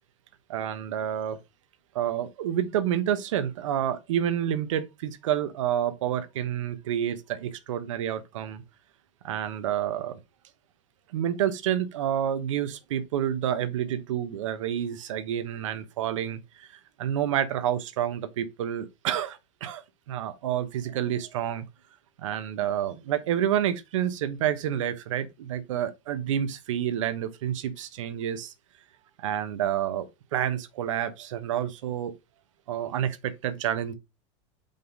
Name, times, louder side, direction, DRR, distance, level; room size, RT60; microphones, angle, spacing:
voice 1, 0.5-1.4 1.9-8.6 9.2-10.2 11.1-21.7 22.2-28.5 29.2-32.1 32.7-33.9, right 10 dB, 85° right, 1.1 m, -29 dB
5.3 x 4.0 x 5.2 m
supercardioid pair, 135°, 16 cm